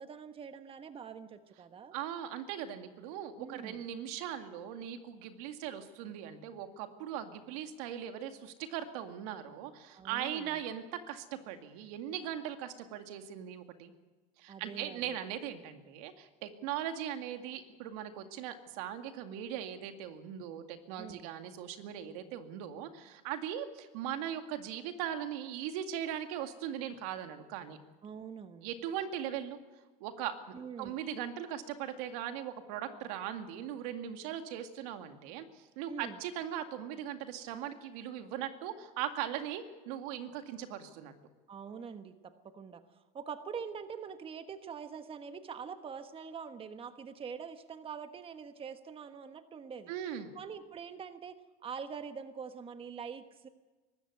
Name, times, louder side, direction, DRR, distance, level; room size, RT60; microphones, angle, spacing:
voice 1, 0.0-1.9 3.4-3.8 9.9-10.6 14.5-15.2 21.0-21.3 28.0-28.7 30.5-31.0 35.9-36.2 41.5-49.9 50.3-53.5, right 6 dB, 30° right, 9 dB, 1.3 m, -44 dB
voice 2, 1.9-13.9 14.4-27.8 28.6-29.6 30.0-30.3 30.8-41.1 49.9-50.4, right 10 dB, 70° right, 7 dB, 2.1 m, -39 dB
23.5 x 13.5 x 9.5 m, 1.3 s
supercardioid pair, 100°, 20 cm